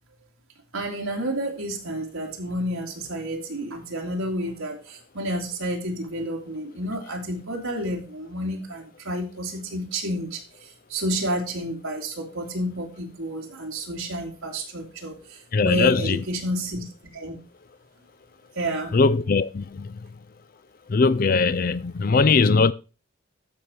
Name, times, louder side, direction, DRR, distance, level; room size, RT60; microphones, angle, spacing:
voice 1, 0.7-17.4 18.6-18.9, right 1 dB, 80° right, 2.4 m, -30 dB
voice 2, 15.5-16.2 18.9-20.1 20.9-22.7, left 4 dB, 45° left, 0.4 m, -20 dB
13.0 x 5.0 x 4.3 m
head